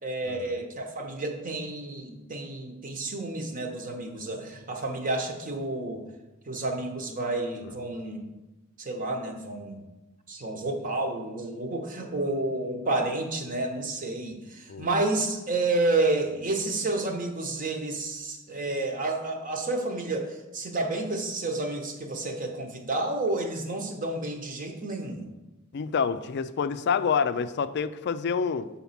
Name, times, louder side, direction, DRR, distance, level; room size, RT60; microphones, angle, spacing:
voice 1, 0.0-6.1 6.5-8.2 8.8-9.8 10.3-25.3, right 2 dB, 40° right, 4 dB, 1.0 m, -30 dB
voice 2, 25.7-28.7, left 6 dB, 55° left, 13 dB, 0.4 m, -27 dB
7.1 x 4.2 x 5.8 m, 1.0 s
head